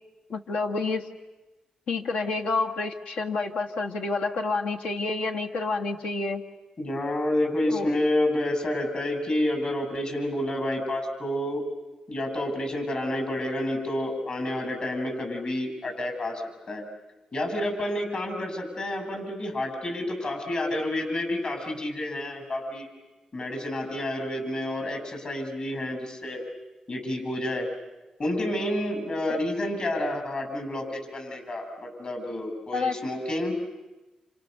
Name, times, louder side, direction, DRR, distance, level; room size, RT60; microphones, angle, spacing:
voice 1, 0.3-1.0 1.9-6.4 7.7-8.0 29.3-29.4 32.7-33.0, left 3 dB, 90° left, 2 dB, 1.7 m, -29 dB
voice 2, 6.8-11.6 12.1-16.4 16.7-16.8 17.3-22.9 23.3-26.4 26.9-27.7 28.2-33.5, left 1 dB, 50° left, 5 dB, 7.6 m, -29 dB
30.0 x 28.0 x 6.9 m, 1.1 s
cardioid pair, 65°, 2 cm